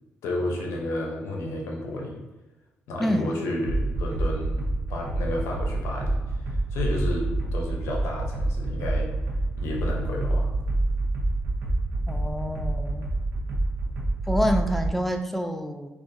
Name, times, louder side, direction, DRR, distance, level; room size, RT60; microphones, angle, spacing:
voice 1, 0.2-2.2 2.9-4.6 4.9-7.3 7.5-9.1 9.6-10.5, left 1 dB, 85° left, 0 dB, 0.7 m, -31 dB
voice 2, 3.0-3.4 12.1-13.1 14.3-15.9, equal, 5° left, 5 dB, 0.3 m, -27 dB
sound 1, 3.6-14.9, right 2 dB, 65° right, 0.6 m, -27 dB
4.3 x 2.4 x 2.6 m, 1.1 s
cardioid pair, 90°, 4 cm